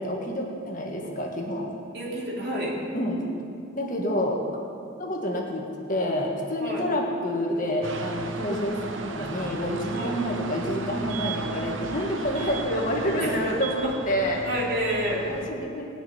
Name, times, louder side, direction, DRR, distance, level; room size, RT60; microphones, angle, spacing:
voice 1, 0.0-1.7 2.9-3.3 3.7-4.4 5.0-14.4 15.3-15.9, equal, 40° left, -1 dB, 1.8 m, -28 dB
voice 2, 1.9-2.8 6.6-6.8 10.0-10.1 13.2-13.4 13.8-13.9 14.4-15.2, equal, 50° right, -4 dB, 3.4 m, -29 dB
sound 1, 7.8-15.5, right 4 dB, 70° right, 1.0 m, -35 dB
19.0 x 6.6 x 9.4 m, 2.6 s
head